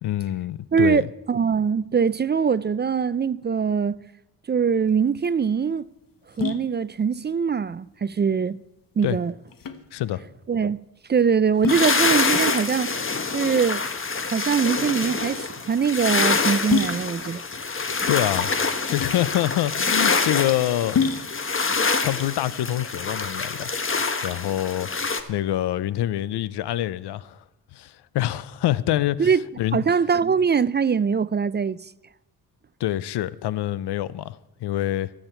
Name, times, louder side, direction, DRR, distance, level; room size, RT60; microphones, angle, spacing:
voice 1, 0.0-1.1 9.0-9.2 9.9-10.2 18.1-18.5 18.9-21.1 22.0-23.7 24.2-24.9 25.3-27.4 27.7-29.3 29.6-29.8 32.8-35.1, left 13 dB, 80° left, 0.7 m, -26 dB
voice 2, 0.7-4.0 4.5-5.9 6.4-8.6 9.0-9.3 10.5-10.8 11.1-12.9 13.3-13.8 14.2-17.4 29.2-29.4 29.7-31.9, right 6 dB, 25° right, 0.4 m, -22 dB
sound 1, 4.8-23.4, left 6 dB, 55° left, 1.4 m, -32 dB
sound 2, 11.7-25.2, left 4 dB, 30° left, 1.4 m, -26 dB
23.0 x 8.8 x 4.4 m
cardioid pair, 75°, 40 cm